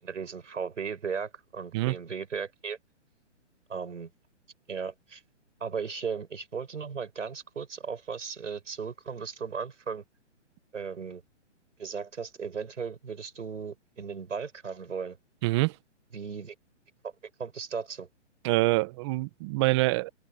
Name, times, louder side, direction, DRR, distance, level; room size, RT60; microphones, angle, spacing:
voice 1, 0.0-2.8 3.7-4.1 4.7-5.2 5.6-10.0 10.7-11.2 11.8-15.2 16.1-16.5 17.0-17.1 17.4-18.1, right 6 dB, 90° right, 5.8 m, -36 dB
voice 2, 15.4-15.7 18.4-20.1, right 20 dB, 25° right, 1.1 m, -25 dB
open air
hypercardioid pair, 155°, 36 cm